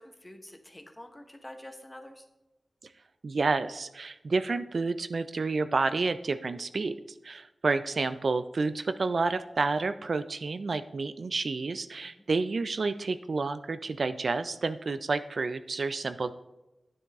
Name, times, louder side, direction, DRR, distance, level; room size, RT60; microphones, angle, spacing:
voice 1, 0.0-2.3 12.0-12.2, left 1 dB, 15° left, 5 dB, 1.1 m, -47 dB
voice 2, 3.2-6.9 7.2-16.3, right 3 dB, 65° right, 12 dB, 0.4 m, -30 dB
9.7 x 7.1 x 3.5 m, 0.99 s
wide cardioid pair, 70°, 0 cm